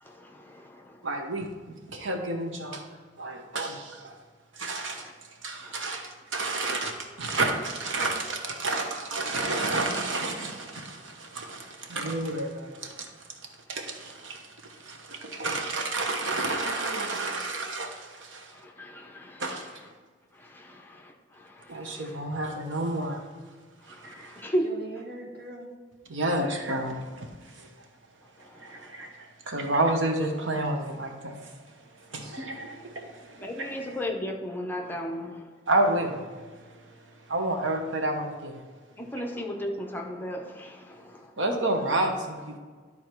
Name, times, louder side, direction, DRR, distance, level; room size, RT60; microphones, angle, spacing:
voice 1, 0.0-1.0 4.8-5.1 5.6-5.9 18.5-19.5 20.4-22.2 23.9-24.7 28.5-29.1 32.1-32.4 33.4-35.4 39.0-41.3, equal, 10° left, 1 dB, 0.8 m, -36 dB
voice 2, 1.0-2.8 3.2-4.2 4.5-5.1 5.4-13.1 13.7-18.5 19.4-19.8 21.7-23.2 23.9-24.4 26.1-27.3 27.5-27.7 28.6-31.6 32.0-32.4 32.9-33.1 33.4-34.0 35.7-36.3 37.3-38.6 41.4-42.6, right 2 dB, 85° right, 3 dB, 1.1 m, -30 dB
voice 3, 16.5-17.3 24.6-25.7 32.1-32.5 32.8-32.9, right 3 dB, 55° right, 1 dB, 1.4 m, -42 dB
12.0 x 4.1 x 4.5 m, 1.5 s
head